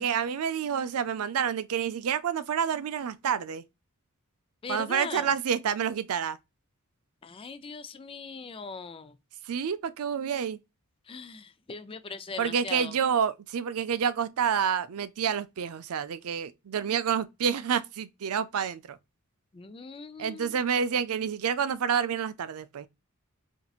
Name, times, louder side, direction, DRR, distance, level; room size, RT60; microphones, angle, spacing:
voice 1, 0.0-3.6 4.7-6.4 9.5-10.6 12.4-19.0 20.2-22.9, right 7 dB, 75° right, 0.4 m, -28 dB
voice 2, 4.6-5.3 7.2-9.2 11.1-12.9 19.5-20.6, left 4 dB, 25° left, 0.4 m, -40 dB
4.3 x 2.6 x 2.3 m
head